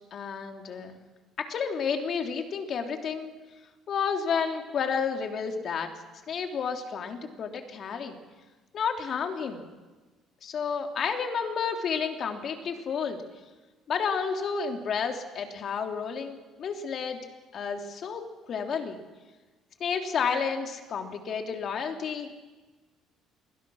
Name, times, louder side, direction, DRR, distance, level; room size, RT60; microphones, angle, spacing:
voice 1, 0.1-1.0 1.4-3.3 3.9-5.9 6.3-8.1 8.7-9.6 10.4-13.2 13.9-17.2 17.5-19.0 19.8-22.3, left 6 dB, 45° left, 4 dB, 3.0 m, -31 dB
29.0 x 22.5 x 6.4 m, 1.3 s
cardioid pair, 130°, 0 cm